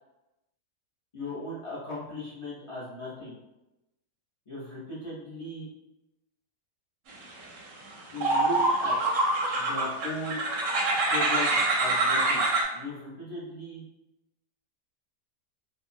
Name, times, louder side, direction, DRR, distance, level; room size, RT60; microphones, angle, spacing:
voice 1, 1.1-3.4 4.5-5.7 8.1-9.2 9.5-10.4 11.1-12.5 12.7-13.8, left 2 dB, 30° left, -9 dB, 0.6 m, -37 dB
sound 1, 7.6-7.7 8.2-12.6, right 2 dB, 65° right, 0.8 m, -25 dB
2.6 x 2.4 x 2.5 m, 0.95 s
omnidirectional pair, 1.7 m